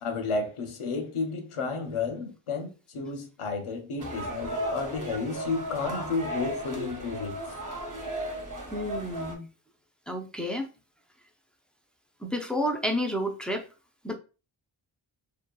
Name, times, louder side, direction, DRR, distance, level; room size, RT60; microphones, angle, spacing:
voice 1, 0.0-7.4, left 4 dB, 85° left, 0.7 m, -32 dB
sound 1, 4.0-9.3, equal, 40° right, 0.7 m, -35 dB
voice 2, 8.7-9.5 10.1-10.7 12.2-13.7 14.0-14.1, equal, ahead, 0.4 m, -30 dB
2.7 x 2.2 x 2.2 m
wide cardioid pair, 65°, 49 cm